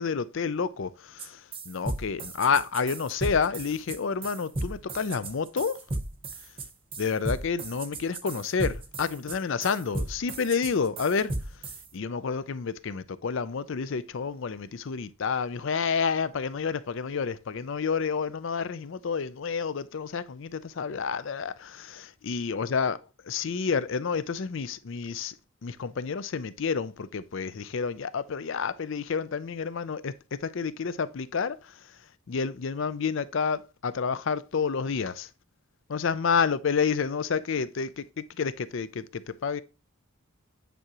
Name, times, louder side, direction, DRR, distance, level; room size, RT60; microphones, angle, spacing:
voice 1, 0.0-5.8 7.0-11.6 11.9-23.0 23.3-25.4 25.6-35.3 35.9-39.6, left 5 dB, 55° left, 0.4 m, -29 dB
sound 1, 1.2-1.3 1.5-11.8, right 2 dB, 25° right, 0.8 m, -35 dB
9.2 x 4.8 x 2.9 m
head